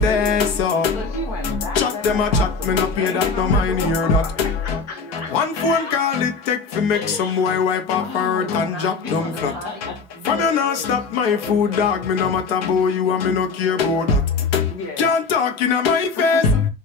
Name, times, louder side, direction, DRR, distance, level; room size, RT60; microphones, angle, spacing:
voice 1, 0.9-6.1 6.9-7.5 7.9-8.8 9.0-10.0 12.2-12.4 14.7-15.1 16.2-16.7, left 3 dB, 35° left, 0.8 m, -33 dB
voice 2, 5.3-6.1 7.4-8.0 8.2-8.4 10.4-10.7 11.8-11.9 12.7-13.4 13.8-13.9 15.0-16.4, left 6 dB, 75° left, 0.6 m, -19 dB
voice 3, 8.4-13.2 13.5-14.4, equal, ahead, 0.7 m, -38 dB
2.2 x 2.0 x 2.7 m
supercardioid pair, 175°, 30 cm